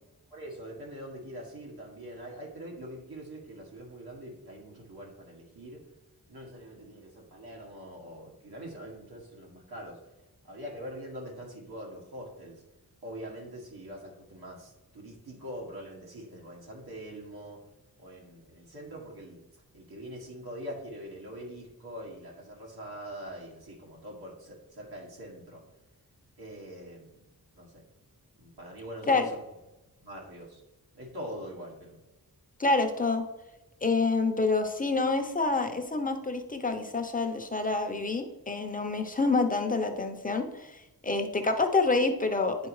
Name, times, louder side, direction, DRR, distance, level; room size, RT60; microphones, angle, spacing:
voice 1, 0.3-5.8 6.3-10.0 10.5-12.6 13.0-17.6 18.0-19.4 19.7-25.6 26.4-27.1 27.6-27.8 28.4-29.4 30.0-30.6 30.9-32.0, equal, 90° right, -3 dB, 2.0 m, -43 dB
voice 2, 32.6-33.2 33.8-42.7, left 3 dB, 25° left, 5 dB, 0.6 m, -27 dB
10.5 x 4.2 x 3.1 m, 1.0 s
wide cardioid pair, 135°, 37 cm